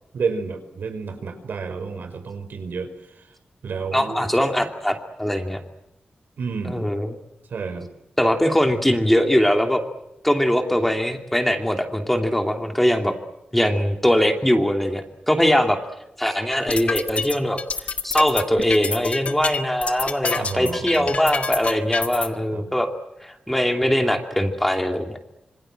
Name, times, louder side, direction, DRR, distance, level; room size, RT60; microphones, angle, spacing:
voice 1, 0.1-2.9 3.6-4.3 6.4-6.9 7.5-7.9 20.3-21.1 22.5-22.6, right 5 dB, 80° right, 8 dB, 5.1 m, -30 dB
voice 2, 3.9-5.6 6.6-7.2 8.2-9.8 10.2-13.1 13.5-15.8 16.2-17.6 18.0-22.9 23.2-25.1, equal, 5° left, 5 dB, 2.6 m, -21 dB
sound 1, 16.5-22.3, left 4 dB, 45° left, 1.7 m, -27 dB
27.0 x 26.0 x 7.7 m, 0.90 s
wide cardioid pair, 155°, 3 cm